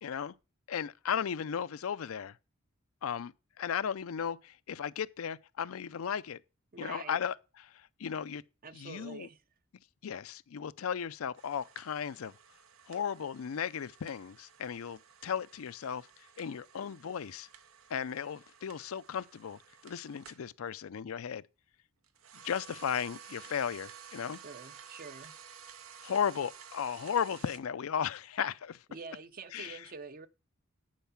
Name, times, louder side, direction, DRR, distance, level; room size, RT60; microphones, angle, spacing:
voice 1, 0.0-0.3 0.7-2.4 3.0-6.4 6.8-7.3 7.7-8.4 8.7-9.3 10.0-12.3 12.9-17.5 17.9-21.4 22.4-24.4 26.0-28.8 29.5-29.8, left 7 dB, 85° left, 0.4 m, -35 dB
voice 2, 6.7-7.2 8.6-9.4 24.4-25.4 28.9-30.3, right 4 dB, 45° right, 0.6 m, -46 dB
sound 1, 11.4-20.5 22.0-27.6, right 7 dB, 85° right, 0.9 m, -53 dB
10.5 x 4.7 x 5.7 m
head